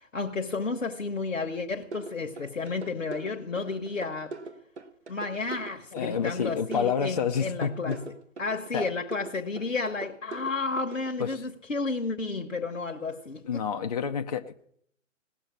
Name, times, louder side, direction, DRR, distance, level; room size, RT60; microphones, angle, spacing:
voice 1, 0.0-4.4 5.1-8.1 8.4-13.6, left 4 dB, 70° left, 1.1 m, -32 dB
sound 1, 1.9-11.3, right 4 dB, 60° right, 1.3 m, -41 dB
voice 2, 5.9-8.0 8.7-8.9 11.2-11.5 13.4-14.5, left 7 dB, 30° left, 0.5 m, -29 dB
17.5 x 6.9 x 8.6 m
figure-of-eight pair, 130°, 39 cm